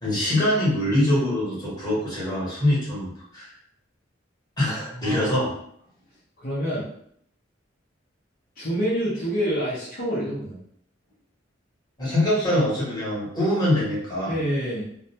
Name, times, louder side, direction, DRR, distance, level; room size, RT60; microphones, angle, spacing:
voice 1, 0.0-3.5 4.6-5.5 12.0-14.3, left 1 dB, 20° left, -8 dB, 1.1 m, -23 dB
voice 2, 4.9-5.3 6.4-6.9 8.6-10.6 14.3-14.8, equal, 50° left, -8 dB, 0.8 m, -27 dB
2.4 x 2.1 x 2.8 m, 0.68 s
head